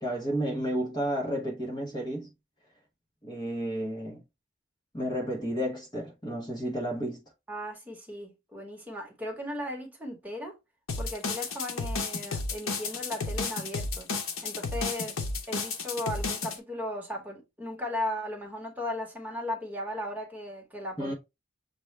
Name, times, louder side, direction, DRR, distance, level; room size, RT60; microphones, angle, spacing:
voice 1, 0.0-2.3 3.2-4.2 4.9-7.2 21.0-21.1, equal, 20° left, 0.9 m, -32 dB
voice 2, 7.5-10.5 11.0-14.1 14.4-15.2 15.5-21.1, left 1 dB, 10° right, 1.1 m, -36 dB
sound 1, 10.9-16.6, left 3 dB, 70° left, 0.8 m, -32 dB
6.8 x 2.3 x 3.2 m
head